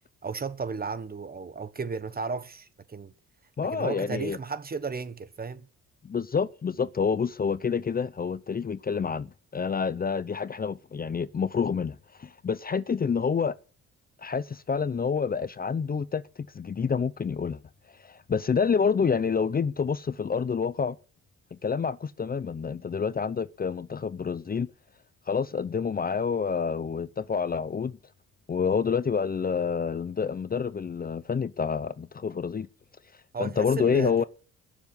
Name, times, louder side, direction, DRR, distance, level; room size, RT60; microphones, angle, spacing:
voice 1, 0.2-3.1 3.7-5.7 33.3-34.3, right 5 dB, 30° right, 1.4 m, -34 dB
voice 2, 3.6-4.4 6.0-13.6 14.2-16.2 16.5-17.6 18.0-21.0 21.5-24.7 25.3-28.0 28.5-32.7 33.4-34.2, left 6 dB, 30° left, 0.7 m, -28 dB
20.5 x 7.2 x 9.7 m
cardioid pair, 90°, 30 cm